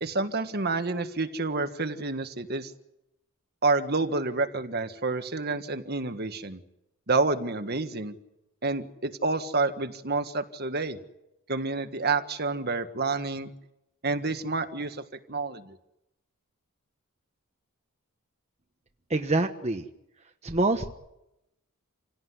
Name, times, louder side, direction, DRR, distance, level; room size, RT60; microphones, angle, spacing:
voice 1, 0.0-2.7 3.6-6.6 7.1-8.1 8.6-11.0 11.5-13.5 14.0-15.8, right 3 dB, 45° right, 9 dB, 1.6 m, -29 dB
voice 2, 19.1-19.8 20.4-20.9, right 2 dB, 30° right, 4 dB, 1.3 m, -25 dB
28.0 x 17.5 x 9.7 m, 0.88 s
head